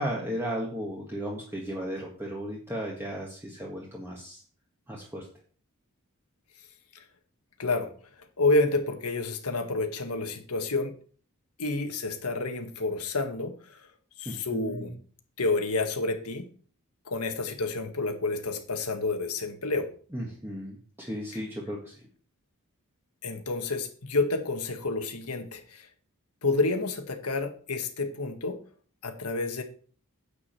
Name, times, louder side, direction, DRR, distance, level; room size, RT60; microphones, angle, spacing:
voice 1, 0.0-4.4 4.9-5.3 14.3-14.9 20.1-22.0, equal, 10° right, -3 dB, 1.7 m, -35 dB
voice 2, 7.6-7.9 8.4-11.0 11.6-13.9 14.2-14.9 15.4-16.5 17.1-19.9 23.2-25.9 26.4-28.6 29.0-29.6, left 3 dB, 85° left, 5 dB, 1.6 m, -29 dB
9.6 x 5.0 x 7.6 m, 0.43 s
head